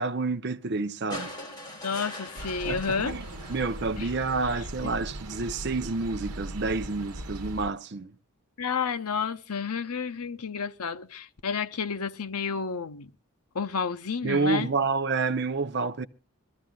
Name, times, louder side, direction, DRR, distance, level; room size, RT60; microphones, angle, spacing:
voice 1, 0.0-1.3 2.6-8.1 14.2-16.1, right 3 dB, 50° right, 0.6 m, -29 dB
sound 1, 1.1-4.4 5.7-5.8, left 1 dB, 20° left, 2.6 m, -42 dB
voice 2, 1.8-3.2 4.0-4.1 4.8-4.9 8.6-13.1 13.5-14.7, left 5 dB, 85° left, 0.8 m, -31 dB
sound 2, 2.4-7.7, right 1 dB, 90° right, 1.1 m, -39 dB
23.5 x 14.5 x 2.3 m
head